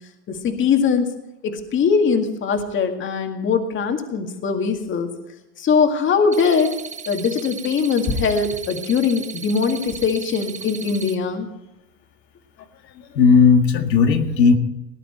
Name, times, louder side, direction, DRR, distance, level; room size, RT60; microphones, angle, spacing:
voice 1, 0.3-1.1 1.4-5.1 5.6-6.7 7.1-11.5, left 5 dB, 25° left, 5 dB, 2.0 m, -21 dB
sound 1, 6.3-11.1, right 6 dB, 15° right, 0.9 m, -36 dB
voice 2, 12.8-14.6, left 5 dB, 85° left, 6 dB, 2.0 m, -15 dB
18.5 x 11.0 x 4.4 m, 0.94 s
hypercardioid pair, 130°, 49 cm